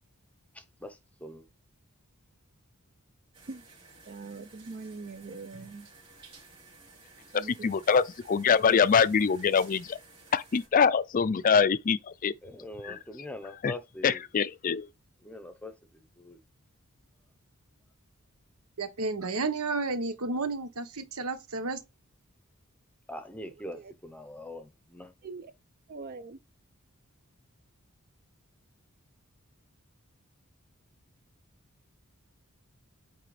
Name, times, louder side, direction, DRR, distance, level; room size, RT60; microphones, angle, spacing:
voice 1, 0.5-1.5 12.4-14.2 15.2-16.4 23.1-25.1, left 1 dB, 5° left, 0.8 m, -43 dB
sound 1, 3.3-10.7, right 3 dB, 25° right, 3.5 m, -54 dB
voice 2, 4.0-5.9 7.3-7.7 23.7-23.9 25.2-25.5 25.9-26.4, right 4 dB, 45° right, 0.5 m, -42 dB
voice 3, 7.3-10.0 10.3-12.3 12.8-13.0 13.6-13.7 14.0-14.9, left 6 dB, 35° left, 0.4 m, -24 dB
voice 4, 18.8-21.8, right 3 dB, 75° right, 1.1 m, -32 dB
8.9 x 3.3 x 3.2 m
head